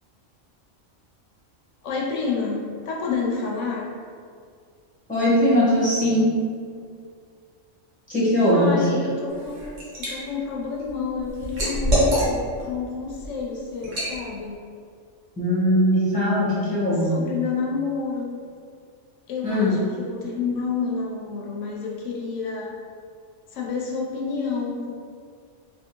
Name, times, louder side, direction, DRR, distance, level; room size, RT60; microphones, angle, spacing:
voice 1, 1.8-3.9 6.0-6.2 8.5-9.6 10.0-14.6 17.0-18.3 19.3-22.7 23.5-24.9, left 5 dB, 80° left, -3 dB, 1.0 m, -29 dB
voice 2, 5.1-6.4 8.1-8.9 15.4-17.2 19.4-19.7, left 1 dB, 5° left, -9 dB, 1.2 m, -20 dB
Liquid, 9.3-10.1 10.5-12.6 13.1-13.3 13.8-14.2, right 1 dB, 85° right, 1.4 m, -24 dB
3.4 x 2.9 x 2.9 m, 2.2 s
omnidirectional pair, 1.3 m